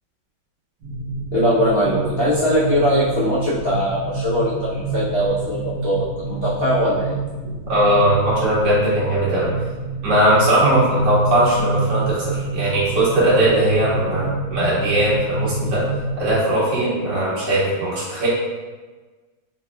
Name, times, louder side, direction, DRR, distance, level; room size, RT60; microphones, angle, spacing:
sound 1, 0.8-16.3, right 2 dB, 75° right, 2.1 m, -27 dB
voice 1, 1.3-7.1, equal, 70° left, -9 dB, 0.5 m, -21 dB
voice 2, 7.7-9.5 10.0-15.8 16.2-18.3, right 1 dB, 60° right, -9 dB, 2.0 m, -19 dB
4.3 x 4.1 x 2.2 m, 1.3 s
omnidirectional pair, 2.2 m